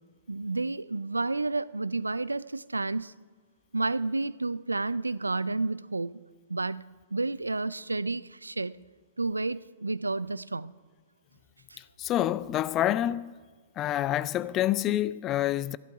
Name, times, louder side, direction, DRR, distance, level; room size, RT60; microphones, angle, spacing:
voice 1, 0.3-3.1 3.7-6.1 6.5-8.8 9.2-10.7 11.7-11.8, right 3 dB, 85° right, 0.3 m, -31 dB
voice 2, 11.8-13.3 13.8-15.8, left 13 dB, 30° left, 0.4 m, -27 dB
14.5 x 11.5 x 4.8 m
figure-of-eight pair, 110°, 0 cm